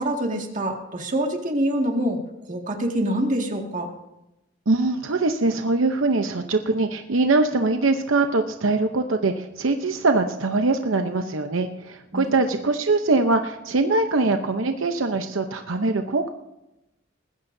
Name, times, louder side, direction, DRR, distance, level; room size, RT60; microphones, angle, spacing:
voice 1, 0.0-3.9 12.1-12.4, right 1 dB, 40° right, 2 dB, 2.1 m, -25 dB
voice 2, 4.7-16.3, right 3 dB, 80° right, 6 dB, 0.8 m, -22 dB
20.0 x 15.5 x 2.7 m, 0.91 s
head